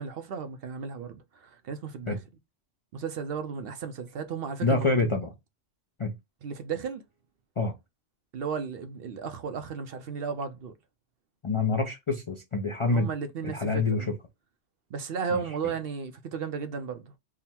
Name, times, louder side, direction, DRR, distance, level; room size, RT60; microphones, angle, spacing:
voice 1, 0.0-2.2 2.9-5.1 6.4-7.0 8.3-10.7 12.9-14.1 14.9-17.2, right 6 dB, 65° right, 0.8 m, -34 dB
voice 2, 4.6-5.3 6.0-6.1 7.6-7.7 11.4-13.1 13.4-14.2 15.3-15.4, left 3 dB, 40° left, 0.4 m, -26 dB
3.7 x 2.1 x 4.2 m
omnidirectional pair, 1.2 m